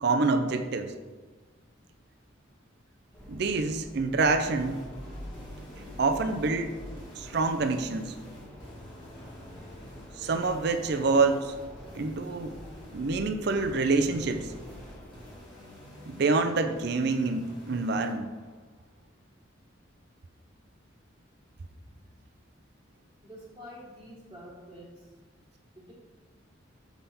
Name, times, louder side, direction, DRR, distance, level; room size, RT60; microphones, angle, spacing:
voice 1, 0.0-0.9 3.3-4.8 6.0-6.7 7.2-8.1 10.2-11.5 11.9-12.5 12.9-14.5 16.1-18.3, right 3 dB, 55° right, 7 dB, 0.5 m, -26 dB
sound 1, 3.1-15.4, left 1 dB, 5° left, 1.1 m, -47 dB
sound 2, 4.5-18.6, equal, 20° left, 1.9 m, -48 dB
voice 2, 23.2-25.1 25.7-25.9, equal, 20° right, -7 dB, 1.3 m, -47 dB
6.9 x 5.7 x 4.2 m, 1.3 s
head